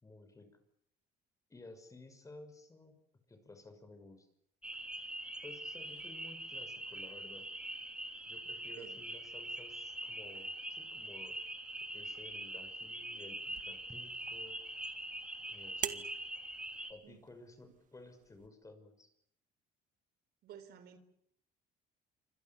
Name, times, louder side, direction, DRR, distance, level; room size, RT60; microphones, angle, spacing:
voice 1, 0.0-0.5 1.5-3.0 3.3-4.3 5.4-7.5 8.3-11.4 11.9-14.6 15.5-16.1 16.9-19.1, left 2 dB, 20° left, 9 dB, 6.3 m, -55 dB
sound 1, 4.6-16.9, right 1 dB, 5° right, 3.9 m, -43 dB
sound 2, 13.5-18.5, right 9 dB, 50° right, 2.1 m, -47 dB
voice 2, 20.4-21.0, right 9 dB, 70° right, 11 dB, 4.1 m, -53 dB
28.0 x 25.5 x 7.3 m, 0.73 s
cardioid pair, 110°, 17 cm